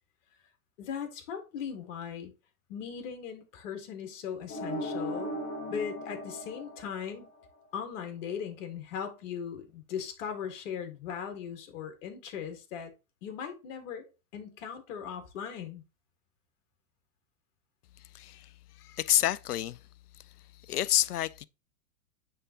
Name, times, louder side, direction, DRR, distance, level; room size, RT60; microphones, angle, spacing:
voice 1, 0.8-2.3 2.7-5.4 5.7-7.3 7.7-12.9 13.2-15.8, left 7 dB, 55° left, 1.9 m, -39 dB
sound 1, 4.5-7.5, equal, 25° left, 1.9 m, -37 dB
voice 2, 18.1-18.5 18.8-19.8 20.6-21.5, left 13 dB, 85° left, 0.6 m, -28 dB
9.6 x 3.5 x 2.9 m
hypercardioid pair, 105°, 45 cm